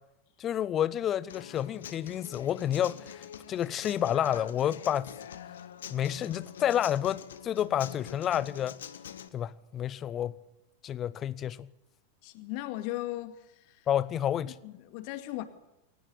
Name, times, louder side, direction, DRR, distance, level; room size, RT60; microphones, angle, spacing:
voice 1, 0.4-5.1 5.9-8.8 9.3-10.3 10.8-11.7 13.9-14.6, left 10 dB, 30° left, 0.7 m, -30 dB
Human voice / Acoustic guitar, 1.3-9.3, left 9 dB, 60° left, 1.4 m, -44 dB
voice 2, 12.2-13.4 14.6-15.4, left 16 dB, 45° left, 2.2 m, -36 dB
22.5 x 19.0 x 8.4 m
figure-of-eight pair, 90°, 0 cm